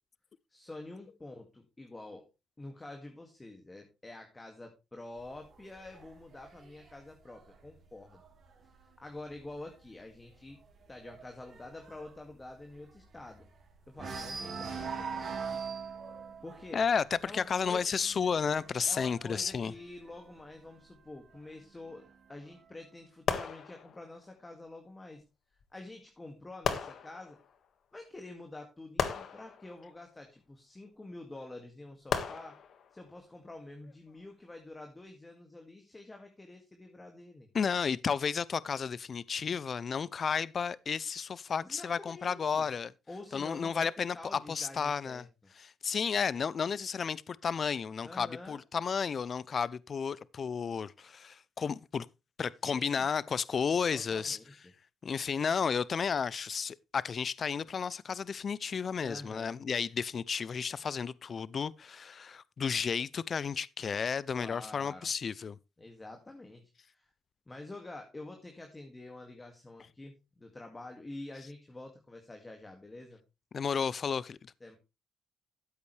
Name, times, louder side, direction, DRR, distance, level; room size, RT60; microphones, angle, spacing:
voice 1, 0.5-2.3 2.6-8.2 8.8-10.6 10.9-13.5 13.9-15.7 16.4-16.8 17.2-17.9 18.9-25.2 25.7-27.4 27.9-32.6 32.9-37.5 41.6-42.7 43.1-45.3 48.0-48.6 52.7-53.1 53.9-54.5 59.0-59.6 64.3-65.1 65.8-67.1 67.5-73.2 74.6-74.8, left 2 dB, 20° left, 2.1 m, -48 dB
sound 1, 5.2-8.8 9.2-9.5 9.8-9.9 10.3-13.6 13.9-20.5 21.3-22.3, right 5 dB, 50° right, 3.6 m, -43 dB
voice 2, 16.7-19.7 37.5-42.9 43.3-45.3 45.5-52.1 52.4-54.4 55.0-65.6 73.5-74.5, left 6 dB, 45° left, 0.5 m, -32 dB
sound 2, 23.3-24.3 25.6-25.7 26.6-27.7 29.0-30.3 32.1-33.1 33.9-34.1, left 7 dB, 65° left, 1.7 m, -36 dB
13.0 x 8.2 x 3.3 m
cardioid pair, 90°, 0 cm